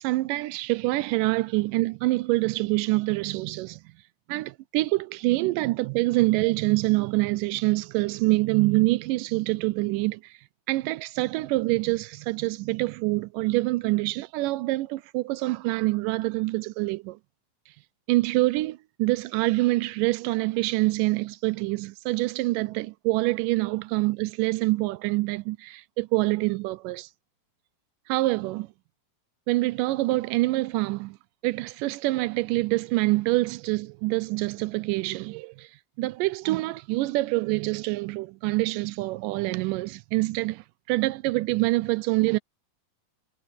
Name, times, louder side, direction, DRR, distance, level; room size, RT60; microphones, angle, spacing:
voice 1, 0.0-3.8 4.3-10.4 10.7-17.2 18.1-27.1 28.1-28.7 29.5-31.2 31.4-35.7 36.0-42.4, right 21 dB, 85° right, 1.9 m, -26 dB
omnidirectional pair, 4.3 m